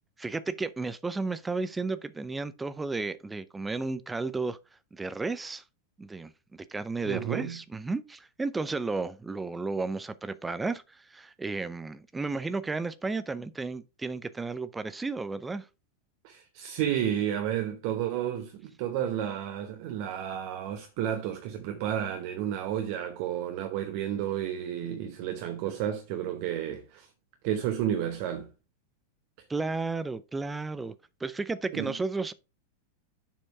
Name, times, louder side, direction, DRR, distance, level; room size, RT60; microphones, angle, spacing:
voice 1, 0.2-4.6 4.9-5.6 6.0-15.7 29.5-30.9 31.2-32.3, right 3 dB, 10° right, 0.5 m, -33 dB
voice 2, 7.1-7.6 16.2-27.1 27.4-28.5 31.7-31.9, right 10 dB, 45° right, 0.9 m, -31 dB
7.2 x 4.4 x 4.6 m
figure-of-eight pair, 90°, 0 cm